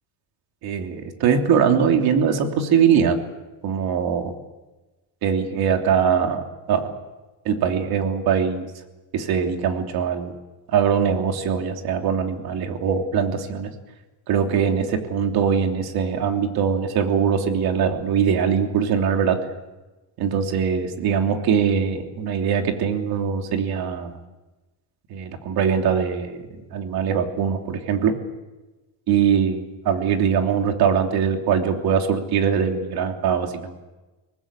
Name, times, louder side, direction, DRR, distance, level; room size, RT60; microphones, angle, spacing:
voice 1, 0.6-3.2 3.6-4.3 5.2-6.4 6.7-6.9 7.4-8.7 9.1-10.3 10.7-13.7 14.3-19.4 20.2-24.2 25.1-28.2 29.1-33.8, right 7 dB, 60° right, 4 dB, 3.2 m, -22 dB
24.0 x 19.5 x 8.4 m, 1.1 s
cardioid pair, 135°, 41 cm